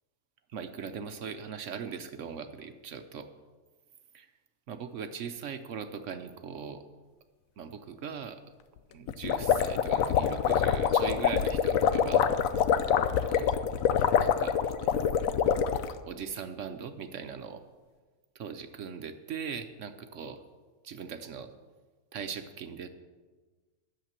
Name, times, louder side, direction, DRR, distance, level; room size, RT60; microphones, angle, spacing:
voice 1, 0.5-3.3 4.1-4.3 4.7-6.8 7.6-8.4 8.9-12.3 13.2-13.6 14.1-14.6 14.8-14.9 16.0-17.6 18.3-20.4 20.8-21.5 22.1-22.9, right 6 dB, 65° right, 9 dB, 0.9 m, -40 dB
sound 1, 9.1-15.9, left 8 dB, 70° left, 1.0 m, -25 dB
11.0 x 7.4 x 7.3 m, 1.4 s
omnidirectional pair, 1.6 m